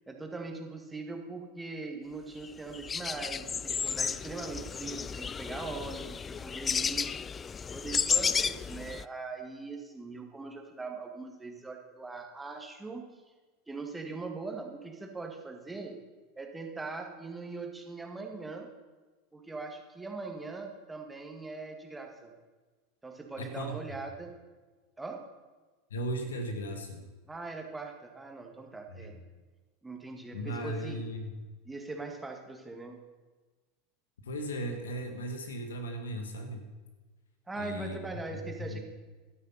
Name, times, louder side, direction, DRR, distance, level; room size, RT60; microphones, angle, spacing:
voice 1, 0.1-7.1 7.7-13.1 13.7-16.0 16.4-18.7 19.3-22.3 23.0-24.4 25.0-25.3 27.3-29.2 29.8-31.0 31.7-33.0 37.5-38.8, right 3 dB, 10° right, 3 dB, 1.9 m, -41 dB
sound 1, 2.4-2.5 2.7-9.0, left 6 dB, 25° left, 0.3 m, -32 dB
voice 2, 23.4-24.0 25.9-27.0 28.9-29.1 30.3-31.4 34.2-36.7 37.6-38.8, equal, 80° left, 7 dB, 1.6 m, -37 dB
12.0 x 8.3 x 5.7 m, 1.3 s
hypercardioid pair, 85°, 0 cm